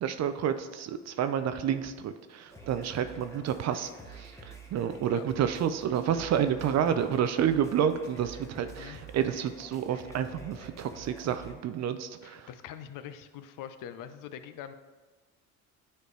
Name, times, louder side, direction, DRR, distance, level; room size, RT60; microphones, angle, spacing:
voice 1, 0.0-12.5, right 9 dB, 45° right, 10 dB, 0.5 m, -30 dB
sound 1, 2.5-11.5, right 3 dB, 5° left, 1.0 m, -48 dB
voice 2, 12.2-14.7, left 9 dB, 50° left, 11 dB, 0.6 m, -43 dB
9.2 x 3.2 x 3.2 m, 1.3 s
hypercardioid pair, 70°, 41 cm